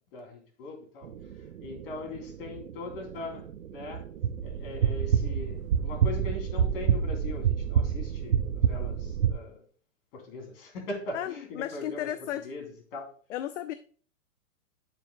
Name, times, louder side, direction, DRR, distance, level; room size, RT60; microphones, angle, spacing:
voice 1, 0.1-1.1 1.6-4.1 4.4-9.6 10.1-12.1 12.4-13.1, left 2 dB, 45° left, 4 dB, 2.9 m, -40 dB
sound 1, 1.0-9.3, right 8 dB, 90° right, 0.8 m, -28 dB
voice 2, 11.1-12.5 13.3-13.7, left 12 dB, 65° left, 12 dB, 0.6 m, -34 dB
9.6 x 6.9 x 2.2 m, 0.43 s
hypercardioid pair, 140°, 39 cm